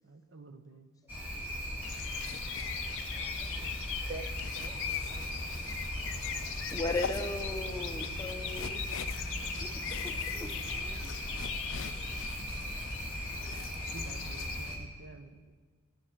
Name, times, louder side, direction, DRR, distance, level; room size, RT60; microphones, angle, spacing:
voice 1, 0.0-0.9 13.9-15.5, right 3 dB, 55° right, 8 dB, 0.7 m, -50 dB
sound 1, 1.1-14.8, equal, 10° right, 2.1 m, -38 dB
sound 2, 1.8-14.8, left 11 dB, 55° left, 0.3 m, -41 dB
voice 2, 4.1-5.2 5.9-6.2 10.3-11.1 12.4-12.5, right 3 dB, 25° right, 4 dB, 0.3 m, -48 dB
voice 3, 6.7-8.8 9.4-10.1 10.4-10.5, left 2 dB, 15° left, 4 dB, 0.6 m, -37 dB
16.0 x 5.6 x 3.7 m, 1.5 s
head